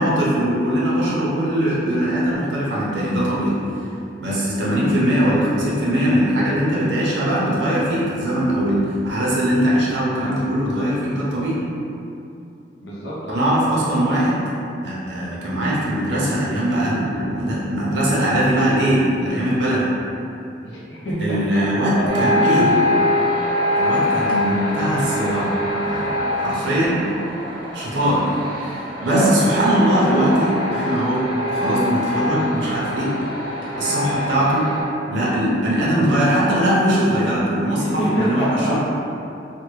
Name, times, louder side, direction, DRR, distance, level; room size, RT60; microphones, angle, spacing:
voice 1, 0.0-3.6 4.2-11.6 13.3-14.4 14.8-19.9 21.2-22.8 23.8-25.6 25.8-27.0 27.7-28.2 28.6-33.1 33.8-34.7 35.1-38.7, equal, 80° right, -7 dB, 0.7 m, -20 dB
voice 2, 12.8-13.4 20.6-21.2 21.5-22.1 28.9-29.3 37.8-38.7, right 1 dB, 80° left, -7 dB, 0.6 m, -25 dB
sound 1, 22.1-34.8, left 1 dB, 30° right, 0.7 m, -24 dB
3.4 x 2.2 x 3.2 m, 2.7 s
head